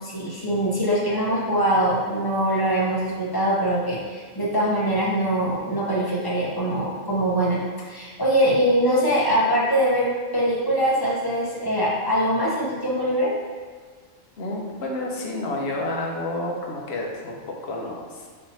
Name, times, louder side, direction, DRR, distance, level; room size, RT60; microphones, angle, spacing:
voice 1, 0.0-7.6 7.9-13.3, equal, 20° left, -6 dB, 0.7 m, -23 dB
voice 2, 14.4-17.4 17.6-18.1, left 2 dB, 60° left, -1 dB, 0.9 m, -29 dB
5.4 x 2.9 x 2.8 m, 1.5 s
omnidirectional pair, 1.3 m